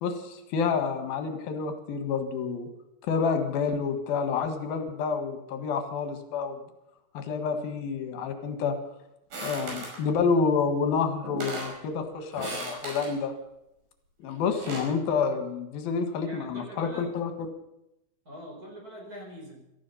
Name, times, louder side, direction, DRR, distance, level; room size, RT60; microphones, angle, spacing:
voice 1, 0.0-2.7 3.1-6.6 7.2-8.8 9.4-13.3 14.2-17.3, left 5 dB, 85° left, 7 dB, 3.5 m, -28 dB
sound 1, 9.3-10.0 10.9-11.0 11.2-11.8 12.3-13.1 14.3-14.9, right 2 dB, 75° right, 7.2 m, -36 dB
voice 2, 16.2-17.2 18.2-19.6, equal, 25° right, 0 dB, 5.0 m, -43 dB
17.5 x 14.0 x 5.6 m, 0.84 s
omnidirectional pair, 4.2 m